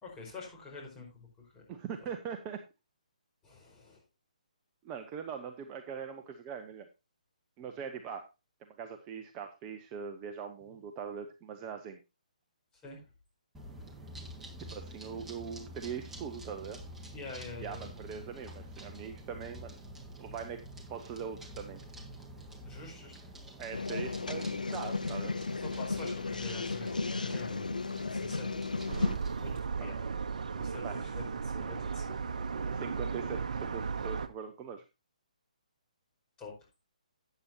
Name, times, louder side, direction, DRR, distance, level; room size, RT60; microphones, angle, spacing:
voice 1, 0.0-1.6 2.0-2.1 3.4-4.0 10.6-10.8 12.8-13.1 17.1-17.9 20.2-20.4 22.6-23.2 25.5-27.7 28.0-28.5 29.4-30.0 30.6-32.1 36.4-36.5, left 3 dB, 15° left, -3 dB, 4.8 m, -47 dB
voice 2, 1.7-2.6 4.8-6.9 7.6-8.3 8.8-12.0 14.7-16.8 17.6-19.8 20.2-20.6 20.9-21.8 23.6-25.3 28.5-28.9 30.8-31.0 32.7-34.8, right 7 dB, 25° right, 6 dB, 0.9 m, -41 dB
sound 1, 13.5-29.6, right 1 dB, 10° right, 1.7 m, -48 dB
sound 2, 23.7-29.2, left 3 dB, 90° left, 0.6 m, -34 dB
sound 3, 28.9-34.3, right 5 dB, 65° right, 1.0 m, -35 dB
12.5 x 8.7 x 2.8 m, 0.26 s
figure-of-eight pair, 140°, 4 cm